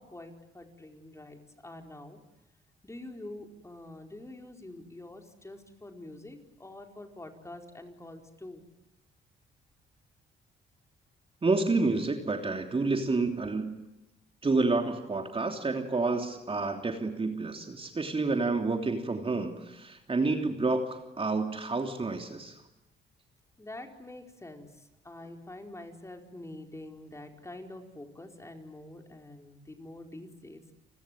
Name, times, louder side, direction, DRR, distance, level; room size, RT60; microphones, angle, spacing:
voice 1, 0.0-2.2 2.8-8.6 23.6-30.6, left 1 dB, 15° left, 4 dB, 4.6 m, -46 dB
voice 2, 11.4-13.8 14.4-22.6, right 3 dB, 30° right, 4 dB, 3.2 m, -29 dB
30.0 x 20.5 x 9.3 m, 0.90 s
cardioid pair, 90°, 20 cm